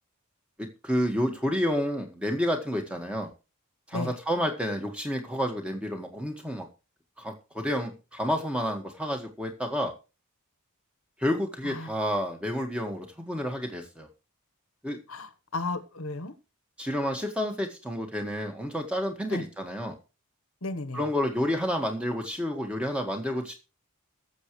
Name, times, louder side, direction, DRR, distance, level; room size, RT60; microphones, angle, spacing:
voice 1, 0.6-3.3 3.9-6.7 7.2-9.9 11.2-14.1 14.8-15.0 16.8-20.0 20.9-23.5, equal, 5° right, 4 dB, 1.7 m, -30 dB
voice 2, 15.1-16.3 19.3-19.4 20.6-21.0, left 2 dB, 65° left, 12 dB, 1.2 m, -34 dB
21.0 x 7.3 x 3.2 m, 0.30 s
head